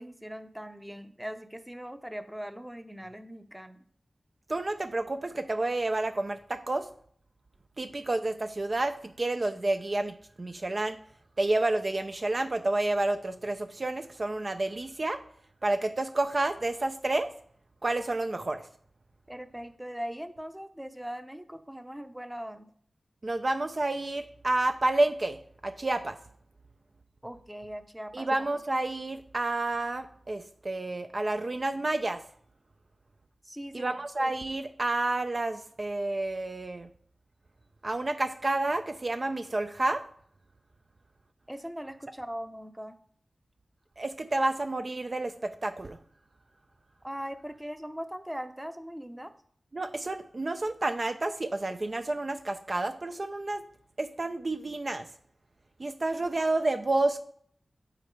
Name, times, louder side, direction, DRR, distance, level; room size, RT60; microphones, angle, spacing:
voice 1, 0.0-3.8 19.3-22.7 27.2-28.5 33.4-33.9 41.5-43.0 47.0-49.3, equal, 10° right, 8 dB, 0.6 m, -40 dB
voice 2, 4.5-6.9 7.8-11.0 11.4-15.2 15.6-17.3 17.8-18.7 23.2-26.2 28.1-32.2 33.7-36.9 37.8-40.0 44.0-46.0 49.7-53.6 54.0-55.1 55.8-57.2, right 2 dB, 50° right, 7 dB, 0.4 m, -30 dB
5.2 x 4.9 x 4.6 m, 0.62 s
cardioid pair, 50°, 0 cm